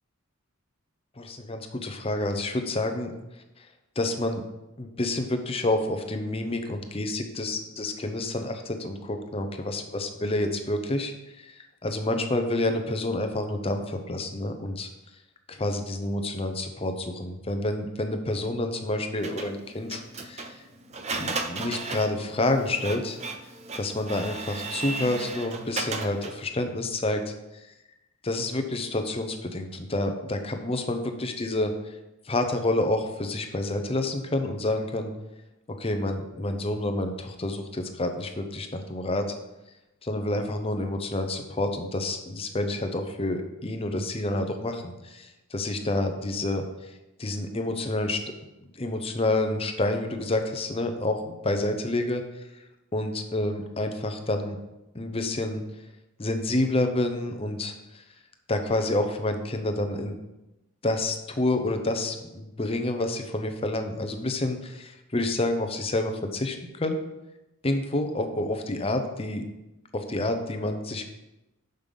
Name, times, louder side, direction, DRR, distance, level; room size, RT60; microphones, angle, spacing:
voice 1, 1.2-3.1 4.0-4.4 4.8-11.1 11.4-14.9 15.5-20.6 21.2-23.2 23.8-27.2 27.5-27.7 28.2-31.9 32.3-35.1 35.8-39.3 40.0-46.6 47.2-48.2 48.7-52.2 52.9-54.6 54.9-55.6 56.2-58.0 58.5-60.2 60.8-67.0 67.6-69.4 69.9-71.0, left 2 dB, 30° left, 6 dB, 0.7 m, -28 dB
Printer, 19.2-26.5, right 3 dB, 30° right, 0.6 m, -35 dB
6.6 x 5.6 x 5.3 m, 0.97 s
head